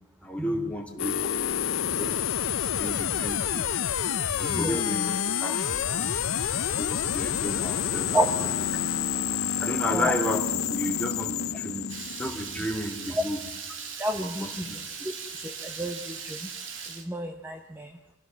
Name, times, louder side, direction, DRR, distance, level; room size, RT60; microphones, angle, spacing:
voice 1, 0.2-2.2 2.5-3.8 4.3-6.5 6.7-8.7 9.6-13.5 14.2-15.1, left 1 dB, 5° left, 1 dB, 2.4 m, -33 dB
sound 1, 1.0-12.9, left 9 dB, 80° left, 0.7 m, -28 dB
Water tap faucet / Liquid, 11.9-17.0, right 6 dB, 70° right, 2.4 m, -39 dB
voice 2, 14.0-14.7 15.6-16.5 16.9-17.9, right 1 dB, 10° right, 5 dB, 1.0 m, -29 dB
24.5 x 15.5 x 7.5 m, 0.92 s
head